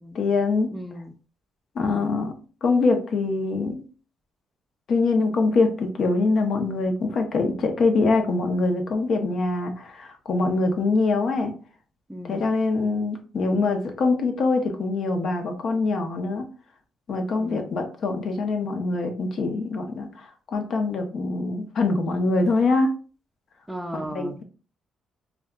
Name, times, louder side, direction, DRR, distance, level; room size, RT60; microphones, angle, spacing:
voice 1, 0.1-0.7 1.7-2.3 2.6-3.8 4.9-11.5 12.3-16.4 17.1-22.9 24.1-24.4, left 3 dB, 60° left, 5 dB, 0.8 m, -24 dB
voice 2, 0.7-1.1 1.8-2.2 12.1-12.5 17.4-17.7 23.7-24.4, equal, 5° right, 5 dB, 0.5 m, -36 dB
5.0 x 2.3 x 2.3 m, 0.37 s
cardioid pair, 90°, 0 cm